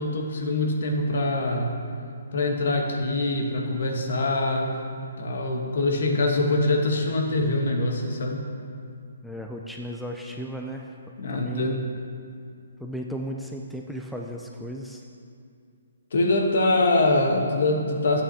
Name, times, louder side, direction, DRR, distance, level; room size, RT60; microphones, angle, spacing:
voice 1, 0.0-1.8 2.3-4.8 5.2-8.4 11.2-11.8 16.1-18.2, left 2 dB, 60° left, 2 dB, 1.2 m, -24 dB
voice 2, 9.2-11.0 11.3-11.8 12.8-15.0, equal, ahead, 0 dB, 0.3 m, -35 dB
11.0 x 8.7 x 2.8 m, 2.4 s
hypercardioid pair, 165°, 0 cm